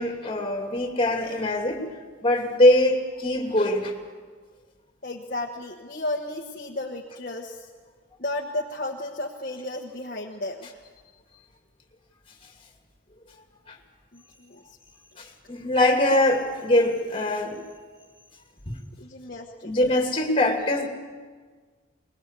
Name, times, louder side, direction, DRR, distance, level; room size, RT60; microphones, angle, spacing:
voice 1, 0.0-1.8 2.2-3.9 13.7-13.8 15.2-17.6 19.6-20.9, left 1 dB, 25° left, 3 dB, 2.7 m, -22 dB
voice 2, 5.0-7.7 8.2-10.8 14.1-14.6 19.0-19.7, left 2 dB, 45° left, 0 dB, 1.3 m, -33 dB
21.5 x 21.0 x 8.3 m, 1.5 s
head